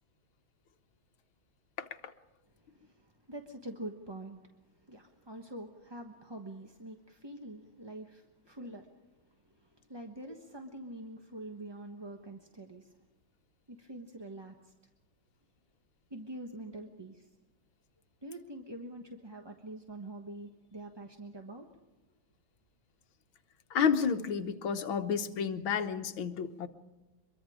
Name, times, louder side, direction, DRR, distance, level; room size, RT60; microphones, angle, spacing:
voice 1, 1.8-2.1 23.7-26.7, left 6 dB, 80° left, 8 dB, 1.9 m, -31 dB
voice 2, 2.6-4.4 4.9-8.9 9.5-13.0 13.7-14.7 16.1-17.3 18.2-21.7, right 1 dB, 15° right, 4 dB, 0.9 m, -45 dB
24.5 x 23.0 x 5.0 m, 1.1 s
omnidirectional pair, 2.2 m